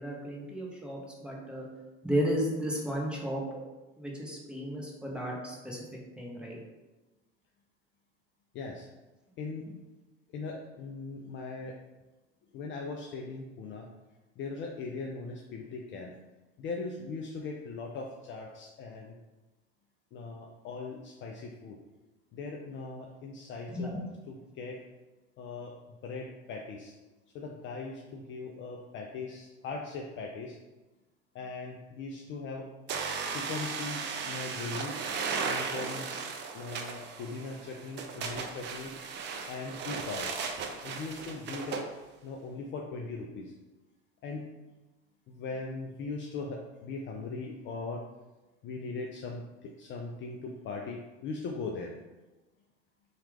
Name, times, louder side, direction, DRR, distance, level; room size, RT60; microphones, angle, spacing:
voice 1, 0.0-1.7 2.0-3.6 4.0-6.6 23.7-24.0, equal, 5° right, -3 dB, 0.7 m, -34 dB
voice 2, 8.5-8.9 9.4-9.7 10.3-11.8 12.5-13.9 14.4-16.2 16.6-19.2 20.1-21.8 22.3-23.9 24.3-24.8 25.4-26.9 27.3-30.6 31.3-32.7 33.3-35.0 35.4-36.1 36.5-39.0 39.5-40.4 40.8-41.9 42.2-43.5 44.2-44.5 45.3-48.0 48.6-51.9, left 3 dB, 35° left, 0 dB, 0.4 m, -39 dB
sound 1, 32.9-41.9, right 5 dB, 30° right, 0.4 m, -36 dB
2.9 x 2.4 x 3.3 m, 1.1 s
hypercardioid pair, 75°, 35 cm